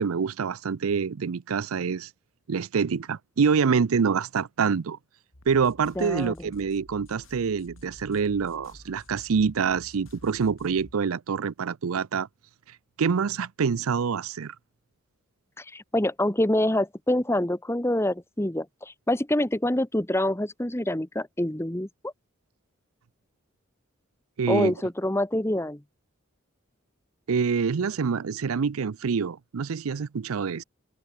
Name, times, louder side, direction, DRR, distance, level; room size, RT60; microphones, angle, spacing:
voice 1, 0.0-2.1 2.5-5.0 5.5-12.3 13.0-14.5 24.4-24.7 27.3-30.6, right 6 dB, 90° right, 0.5 m, -26 dB
sound 1, 5.3-10.9, left 1 dB, 70° left, 4.2 m, -51 dB
voice 2, 6.0-6.5 15.6-22.1 24.5-25.8, left 1 dB, 10° left, 1.2 m, -26 dB
head